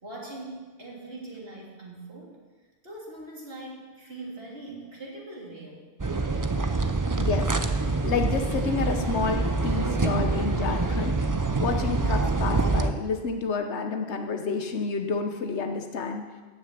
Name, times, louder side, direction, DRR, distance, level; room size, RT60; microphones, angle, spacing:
voice 1, 0.0-2.4 2.8-5.9, right 2 dB, 60° right, -3 dB, 3.4 m, -41 dB
sound 1, 6.0-12.9, right 3 dB, 20° right, 0.6 m, -26 dB
voice 2, 7.2-7.5 8.0-11.2 11.6-16.2, left 5 dB, 90° left, 5 dB, 1.2 m, -29 dB
14.5 x 6.7 x 9.0 m, 1.3 s
omnidirectional pair, 1.1 m